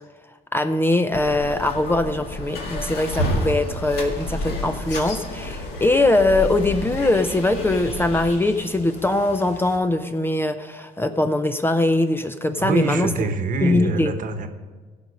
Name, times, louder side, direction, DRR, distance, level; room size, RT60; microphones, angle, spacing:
voice 1, 0.5-13.1 13.6-14.1, left 2 dB, 15° left, 9 dB, 0.5 m, -21 dB
sound 1, 1.1-8.3, left 1 dB, 70° left, 2.0 m, -30 dB
Bird, 4.1-9.8, left 2 dB, 45° left, 3.8 m, -42 dB
voice 2, 12.6-14.5, right 4 dB, 50° right, 8 dB, 1.1 m, -25 dB
16.0 x 5.4 x 5.2 m, 1.4 s
cardioid pair, 110°, 17 cm